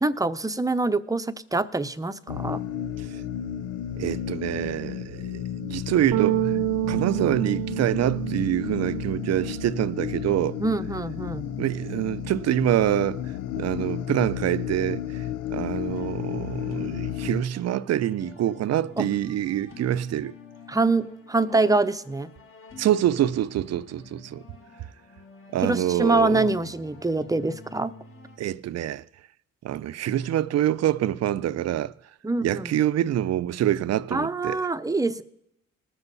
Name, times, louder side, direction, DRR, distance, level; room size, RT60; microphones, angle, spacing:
voice 1, 0.0-2.6 10.6-11.4 19.0-19.1 20.7-22.3 25.6-27.9 32.2-32.7 34.1-35.2, right 2 dB, 10° right, 0.7 m, -25 dB
sound 1, 2.3-17.4, left 10 dB, 90° left, 0.6 m, -33 dB
voice 2, 4.0-6.6 6.9-10.6 11.6-13.2 13.6-20.3 22.8-24.4 25.5-26.5 28.4-29.0 29.6-31.9 32.4-34.7, right 12 dB, 60° right, 0.5 m, -26 dB
sound 2, 6.1-10.7 11.0-12.4, right 15 dB, 85° right, 0.8 m, -30 dB
sound 3, 15.8-28.4, left 4 dB, 45° left, 2.0 m, -48 dB
20.0 x 7.1 x 4.1 m
cardioid pair, 90°, 30 cm